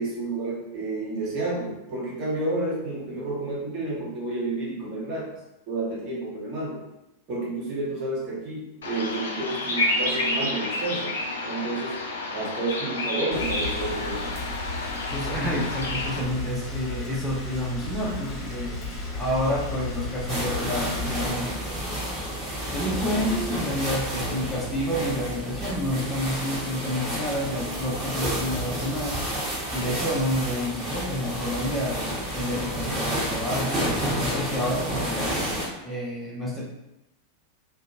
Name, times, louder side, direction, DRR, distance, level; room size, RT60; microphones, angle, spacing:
voice 1, 0.0-5.3 5.7-6.8 7.3-11.1 11.4-12.0 12.3-14.3, right 2 dB, 40° right, -6 dB, 1.1 m, -30 dB
Bird vocalization bird call bird song, 8.8-16.2, left 2 dB, 65° left, 0.4 m, -30 dB
Rain, 13.3-21.3, left 2 dB, 35° left, 0.9 m, -34 dB
voice 2, 15.1-18.9 19.2-22.3 22.7-29.4 29.7-32.0 32.3-35.3 35.8-36.6, equal, 5° left, -6 dB, 0.6 m, -29 dB
sound 1, 20.3-35.7, equal, 20° right, 1.1 m, -30 dB
2.7 x 2.2 x 2.7 m, 0.91 s
figure-of-eight pair, 90°, 0 cm